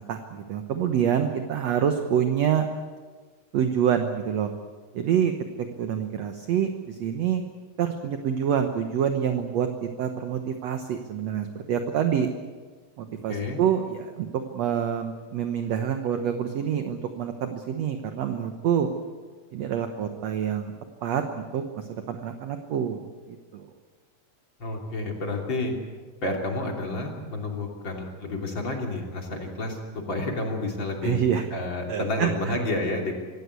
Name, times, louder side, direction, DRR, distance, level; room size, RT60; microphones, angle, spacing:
voice 1, 0.0-2.7 3.5-4.5 4.9-5.3 5.6-7.4 7.8-12.3 13.0-18.9 19.5-20.7 21.0-23.7 31.0-31.5 31.9-32.6, right 8 dB, 60° right, 6 dB, 1.9 m, -27 dB
voice 2, 24.6-25.7 26.2-31.2 31.5-33.2, left 2 dB, 35° left, 1 dB, 3.4 m, -30 dB
25.5 x 16.5 x 8.2 m, 1.5 s
omnidirectional pair, 4.0 m